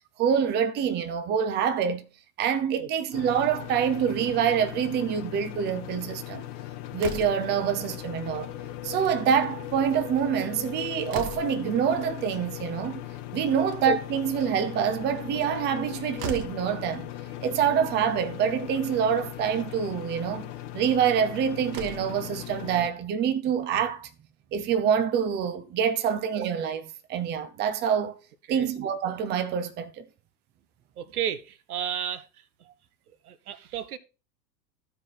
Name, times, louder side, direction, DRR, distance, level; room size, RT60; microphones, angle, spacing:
voice 1, 0.2-2.0 2.4-6.4 6.9-8.5 8.8-13.0 13.3-17.1 17.4-20.5 20.7-24.1 24.5-28.1 28.5-30.0, right 8 dB, 20° right, 0.7 m, -26 dB
sound 1, 3.1-22.9, left 13 dB, 35° left, 1.0 m, -38 dB
Slam, 7.0-7.6 8.8-9.2 9.5-9.6 9.9-10.0 10.6-11.7 13.4-14.1 15.7-15.8 16.2-16.7 17.8-17.9 18.3-18.4 19.2-19.5 21.2-21.3 21.6-22.2, right 5 dB, 40° right, 1.3 m, -38 dB
voice 2, 31.0-32.3 33.2-34.0, right 9 dB, 65° right, 0.9 m, -33 dB
14.5 x 4.9 x 4.2 m
figure-of-eight pair, 90°, 48 cm